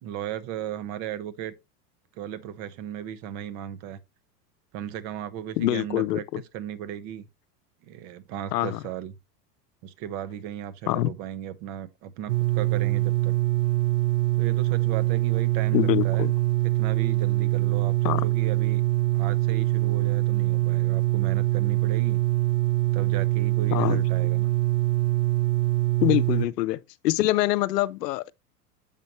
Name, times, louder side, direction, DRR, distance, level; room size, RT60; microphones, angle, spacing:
voice 1, 0.0-1.5 2.1-4.0 4.7-6.2 6.5-7.3 7.8-9.1 9.8-13.4 14.3-16.3 16.7-18.8 19.1-22.2 22.9-24.6, right 10 dB, 55° right, 1.2 m, -36 dB
voice 2, 5.6-6.4 8.5-8.8 10.9-11.1 15.7-16.3 18.0-18.2 23.7-24.0 26.0-28.3, left 16 dB, 75° left, 0.6 m, -25 dB
sound 1, 12.3-26.5, right 18 dB, 80° right, 0.9 m, -24 dB
7.2 x 5.2 x 3.0 m
hypercardioid pair, 95°, 49 cm